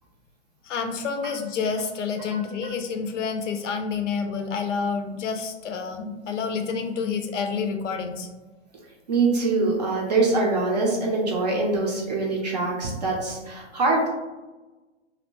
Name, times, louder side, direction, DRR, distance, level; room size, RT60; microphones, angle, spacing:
voice 1, 0.6-8.3, left 5 dB, 75° left, 6 dB, 0.5 m, -28 dB
voice 2, 9.1-14.1, right 3 dB, 35° right, -1 dB, 0.5 m, -24 dB
2.5 x 2.1 x 2.9 m, 1.2 s
hypercardioid pair, 160°, 37 cm